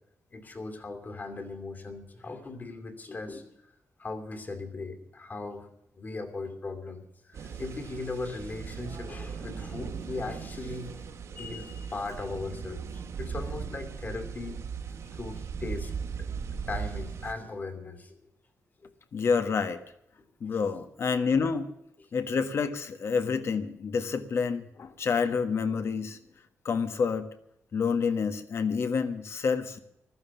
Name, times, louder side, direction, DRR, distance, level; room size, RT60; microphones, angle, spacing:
voice 1, 0.3-3.4 4.0-5.7 6.0-14.6 15.1-15.9 16.7-18.2, left 3 dB, 35° left, 7 dB, 2.6 m, -38 dB
sound 1, 7.3-17.3, right 6 dB, 70° right, 2.4 m, -38 dB
voice 2, 19.1-19.8 20.4-21.7 22.1-26.2 26.6-27.3 27.7-29.8, left 5 dB, 55° left, 10 dB, 1.5 m, -28 dB
15.0 x 13.0 x 7.2 m, 0.76 s
wide cardioid pair, 135°, 5 cm